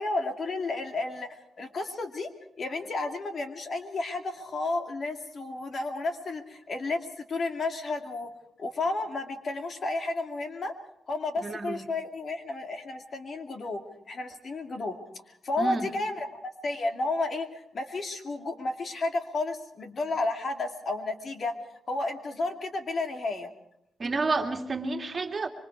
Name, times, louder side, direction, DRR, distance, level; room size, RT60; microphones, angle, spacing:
voice 1, 0.0-2.3 2.6-8.3 8.6-10.8 11.1-15.0 15.3-21.5 21.9-23.5, left 2 dB, 45° left, 5 dB, 2.4 m, -32 dB
voice 2, 11.4-11.8 15.6-15.9 24.0-25.5, right 3 dB, 35° right, 4 dB, 2.4 m, -30 dB
25.5 x 24.5 x 4.7 m, 0.79 s
cardioid pair, 120°, 0 cm